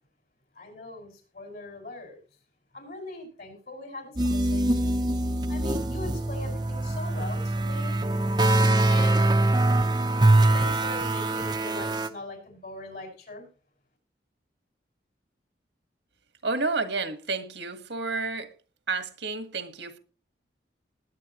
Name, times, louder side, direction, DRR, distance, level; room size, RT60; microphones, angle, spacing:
voice 1, 0.5-2.2 2.7-5.0 5.5-8.0 8.9-9.3 10.5-13.5, left 2 dB, 55° left, 5.6 m, -41 dB
sound 1, 4.2-12.1, right 2 dB, 25° right, 0.8 m, -23 dB
voice 2, 16.4-18.5 18.9-20.0, right 3 dB, 80° right, 1.6 m, -30 dB
20.0 x 8.5 x 3.1 m
head